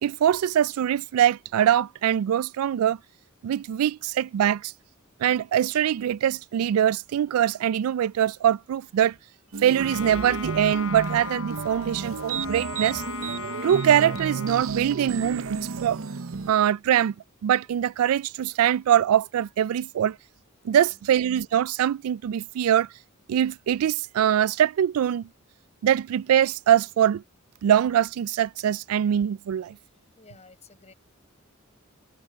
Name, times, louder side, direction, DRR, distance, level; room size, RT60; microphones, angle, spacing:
voice 1, 0.0-3.0 3.4-4.7 5.2-9.1 9.6-13.0 13.6-16.0 16.5-17.1 17.4-20.2 20.6-22.9 23.3-25.3 25.8-27.2 27.6-29.8, right 10 dB, 85° right, 0.3 m, -23 dB
sound 1, 9.5-16.5, right 5 dB, 70° right, 0.7 m, -32 dB
Trumpet, 9.7-14.8, left 5 dB, 80° left, 3.7 m, -38 dB
voice 2, 29.8-30.9, left 3 dB, 30° left, 5.9 m, -53 dB
head